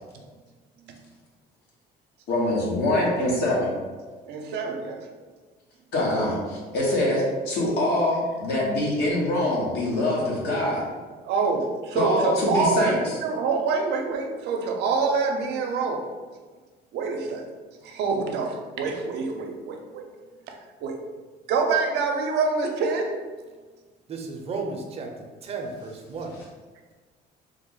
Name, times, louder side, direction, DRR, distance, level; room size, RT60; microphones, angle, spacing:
voice 1, 2.3-3.7 5.9-10.8 11.9-13.2, left 1 dB, 75° left, -4 dB, 1.2 m, -24 dB
voice 2, 4.3-5.1 11.2-13.0 13.2-16.0 16.9-17.4 17.8-20.1 20.8-21.0 21.5-23.2, right 4 dB, 80° right, 3 dB, 0.5 m, -26 dB
voice 3, 24.1-25.1 25.4-26.4, right 4 dB, 40° right, 2 dB, 0.6 m, -33 dB
3.3 x 2.1 x 3.7 m, 1.4 s
cardioid pair, 110°, 17 cm